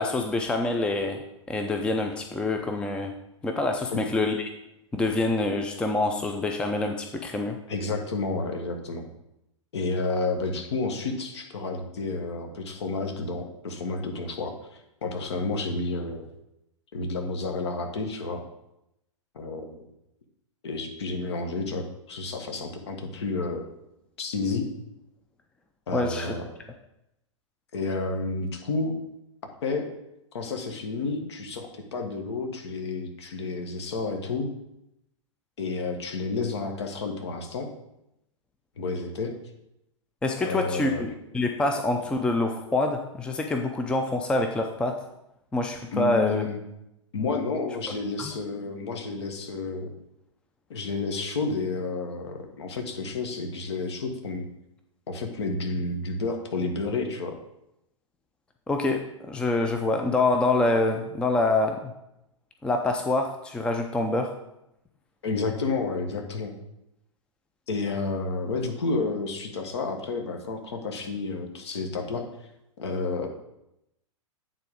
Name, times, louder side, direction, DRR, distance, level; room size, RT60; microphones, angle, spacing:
voice 1, 0.0-3.1 3.4-4.5 4.9-7.6 25.9-26.3 40.2-45.0 45.5-46.4 48.2-48.3 58.7-61.9 62.6-64.3, left 2 dB, 5° left, 5 dB, 0.5 m, -26 dB
voice 2, 7.7-9.1 9.7-16.2 16.9-18.4 19.3-19.8 20.6-23.6 24.2-24.7 25.9-26.4 27.7-28.9 29.6-29.9 30.3-34.5 35.6-37.7 38.8-39.3 40.4-41.0 45.9-46.6 47.1-49.9 50.7-54.5 55.1-57.4 65.2-66.5 67.7-72.3 72.8-73.3, left 3 dB, 60° left, 4 dB, 1.3 m, -30 dB
9.0 x 3.8 x 4.9 m, 0.85 s
figure-of-eight pair, 105°, 16 cm